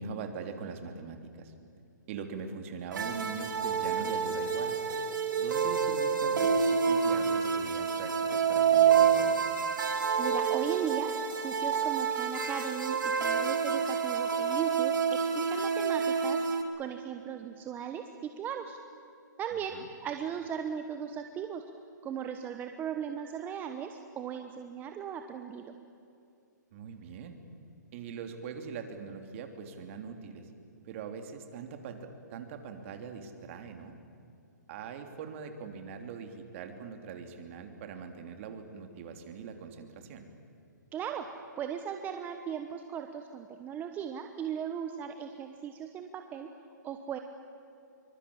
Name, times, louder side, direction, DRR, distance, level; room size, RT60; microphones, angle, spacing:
voice 1, 0.0-1.5 2.1-4.8 5.4-9.3 19.7-19.9 26.7-27.4 27.9-30.5 30.8-34.0 34.7-40.3, right 5 dB, 40° right, 6 dB, 3.1 m, -42 dB
sound 1, 2.9-16.6, right 6 dB, 75° right, 3.2 m, -28 dB
voice 2, 10.2-11.1 11.4-16.5 16.8-18.8 19.4-21.6 22.0-25.8 40.9-46.5 46.8-47.2, right 8 dB, 15° right, 6 dB, 1.1 m, -37 dB
25.5 x 24.0 x 8.7 m, 2.6 s
hypercardioid pair, 145°, 10 cm